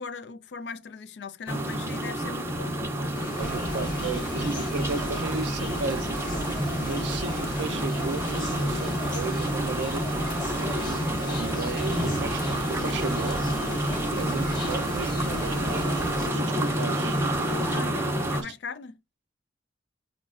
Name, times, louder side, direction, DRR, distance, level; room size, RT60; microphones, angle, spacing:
voice 1, 0.0-4.4 14.3-14.5 17.7-19.0, left 5 dB, 70° left, 0.4 m, -40 dB
sound 1, 1.5-18.4, right 1 dB, 15° right, 0.5 m, -29 dB
sound 2, 3.1-17.8, left 2 dB, 50° left, 0.8 m, -42 dB
sound 3, 3.4-16.3, equal, 25° left, 0.9 m, -38 dB
voice 2, 3.4-13.5 14.1-17.2 17.7-17.9 18.3-18.5, right 4 dB, 75° right, 0.4 m, -35 dB
5.2 x 2.2 x 2.3 m
head